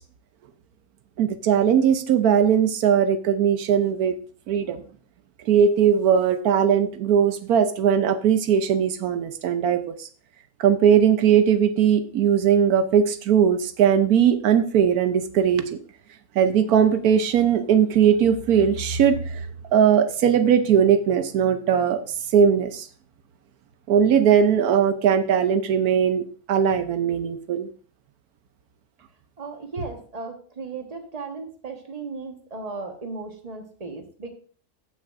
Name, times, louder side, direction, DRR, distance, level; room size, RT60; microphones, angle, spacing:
voice 1, 1.2-4.1 4.5-4.8 5.5-10.1 10.6-15.8 16.4-19.5 19.7-22.0 22.3-22.9 23.9-27.7, right 8 dB, 85° right, 10 dB, 1.2 m, -19 dB
voice 2, 29.4-34.3, right 3 dB, 25° right, 4 dB, 1.3 m, -36 dB
15.0 x 6.1 x 2.5 m, 0.43 s
omnidirectional pair, 1.5 m